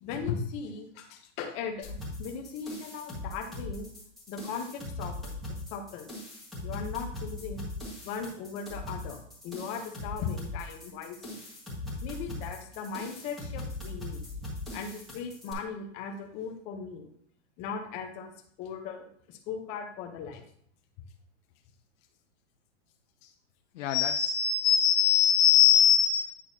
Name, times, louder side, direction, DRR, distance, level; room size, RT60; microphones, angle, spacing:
voice 1, 0.0-3.9 4.3-5.3 5.7-6.1 6.6-7.6 8.0-11.4 12.0-14.2 14.7-17.1 17.6-18.3 18.6-20.4 23.2-23.3, left 6 dB, 20° left, 3 dB, 0.6 m, -38 dB
sound 1, 1.8-15.5, left 2 dB, ahead, 1.4 m, -40 dB
voice 2, 23.7-26.3, left 9 dB, 85° left, 7 dB, 0.6 m, -22 dB
9.0 x 6.1 x 2.7 m, 0.64 s
supercardioid pair, 170°, 36 cm